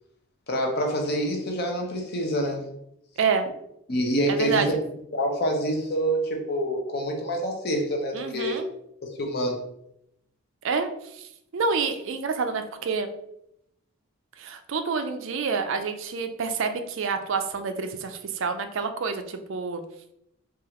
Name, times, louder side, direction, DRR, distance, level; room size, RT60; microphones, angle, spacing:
voice 1, 0.5-2.7 3.9-4.8 5.1-8.6 9.0-9.6, equal, 45° left, 2 dB, 0.7 m, -26 dB
voice 2, 4.3-4.7 8.1-8.7 10.6-13.1 14.4-19.8, right 5 dB, 60° right, 8 dB, 0.4 m, -28 dB
4.7 x 2.4 x 2.9 m, 0.76 s
head